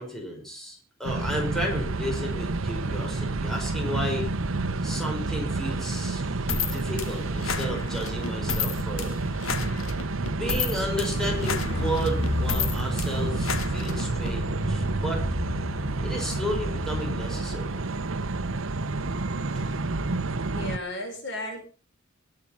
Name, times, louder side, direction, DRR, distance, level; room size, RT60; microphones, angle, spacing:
voice 1, 0.0-4.2 4.8-6.2 6.5-9.2 10.3-15.2 16.0-17.8 19.5-19.7, equal, ahead, -1 dB, 5.7 m, -33 dB
sound 1, 1.0-20.8, right 3 dB, 80° right, 0.9 m, -29 dB
sound 2, 6.5-14.3, left 6 dB, 85° left, 1.6 m, -32 dB
Car, 11.2-17.4 17.6-17.7, left 1 dB, 30° left, 3.3 m, -32 dB
voice 2, 20.5-21.6, left 1 dB, 60° left, 3 dB, 6.5 m, -34 dB
21.0 x 8.7 x 5.9 m, 0.37 s
head